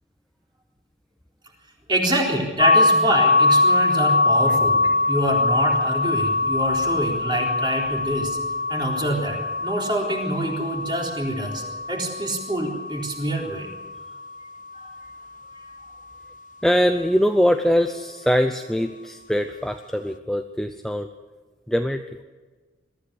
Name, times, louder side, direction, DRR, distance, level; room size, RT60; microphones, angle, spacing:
voice 1, 1.9-4.8 5.1-8.4 8.7-13.7 14.7-14.8, right 1 dB, 25° right, -1 dB, 3.9 m, -26 dB
sound 1, 2.6-14.3, left 3 dB, 40° left, 0.8 m, -23 dB
voice 2, 16.6-21.1 21.7-22.0, equal, ahead, 6 dB, 0.5 m, -22 dB
22.5 x 14.5 x 8.2 m, 1.3 s
head